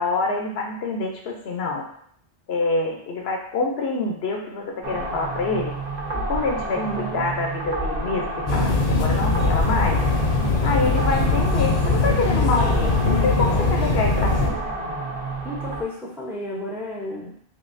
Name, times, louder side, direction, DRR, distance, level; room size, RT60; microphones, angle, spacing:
voice 1, 0.0-1.8 2.5-5.8 6.1-10.0 10.6-14.6, left 3 dB, 80° left, 1 dB, 0.9 m, -26 dB
sound 1, 4.8-15.8, right 2 dB, 50° right, 0.6 m, -30 dB
voice 2, 6.7-7.3 15.4-17.4, equal, 5° right, -3 dB, 0.5 m, -32 dB
sound 2, 8.5-14.5, left 3 dB, 50° left, 0.6 m, -21 dB
3.8 x 3.2 x 2.5 m, 0.64 s
omnidirectional pair, 1.0 m